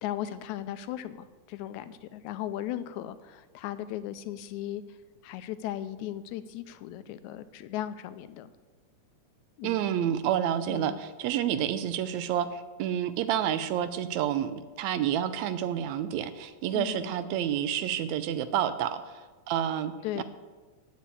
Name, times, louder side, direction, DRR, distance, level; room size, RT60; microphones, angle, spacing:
voice 1, 0.0-5.0 5.2-8.5 9.6-9.9 10.7-11.0 16.7-17.4 20.0-20.2, left 12 dB, 80° left, 13 dB, 1.9 m, -37 dB
voice 2, 9.6-20.2, right 10 dB, 75° right, 12 dB, 1.8 m, -29 dB
9.3 x 8.4 x 8.5 m, 1.3 s
omnidirectional pair, 3.4 m